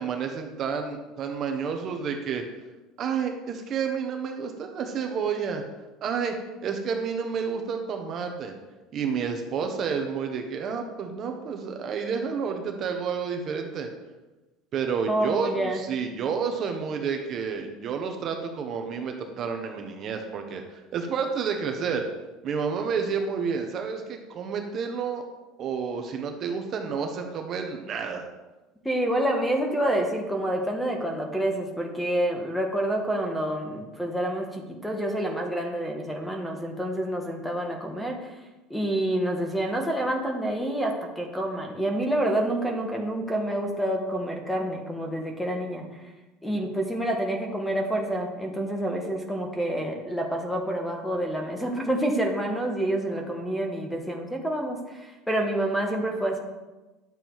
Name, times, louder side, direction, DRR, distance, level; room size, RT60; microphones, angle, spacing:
voice 1, 0.0-2.4 3.0-5.6 6.0-6.3 6.6-8.5 8.9-13.9 14.7-20.6 20.9-22.0 22.4-25.2 25.6-28.3, right 6 dB, 35° right, 4 dB, 1.0 m, -30 dB
voice 2, 15.1-15.8 28.8-38.3 38.7-45.8 46.4-56.4, right 1 dB, 5° left, 2 dB, 1.2 m, -28 dB
10.5 x 7.4 x 4.6 m, 1.1 s
cardioid pair, 165°, 0 cm